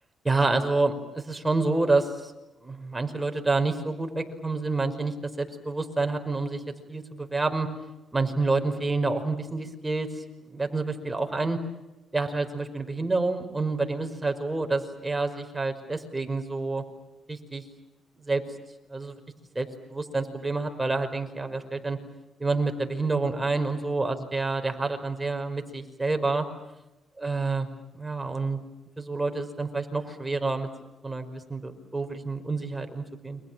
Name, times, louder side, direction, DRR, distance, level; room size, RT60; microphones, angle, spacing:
voice 1, 0.2-2.3 2.6-6.6 6.9-7.7 8.1-11.6 12.1-16.8 17.3-17.6 18.2-18.4 18.9-19.1 19.6-22.0 22.4-26.5 27.2-27.7 27.9-28.6 29.0-30.7 31.0-33.4, right 3 dB, 15° right, 5 dB, 5.3 m, -28 dB
30.0 x 26.0 x 7.6 m, 0.97 s
cardioid pair, 90°, 0 cm